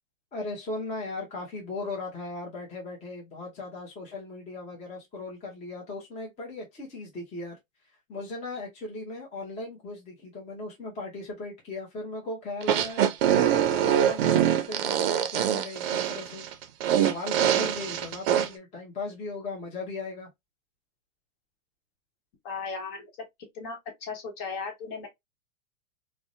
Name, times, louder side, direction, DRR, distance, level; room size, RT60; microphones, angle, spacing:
voice 1, 0.3-7.5 8.1-13.1 13.6-16.4 17.0-20.3, left 2 dB, 15° left, 0.7 m, -37 dB
sound 1, 12.6-18.5, right 10 dB, 45° right, 0.5 m, -24 dB
voice 2, 22.4-23.1 23.5-25.1, left 4 dB, 45° left, 1.1 m, -36 dB
2.7 x 2.1 x 2.4 m
hypercardioid pair, 125°, 40 cm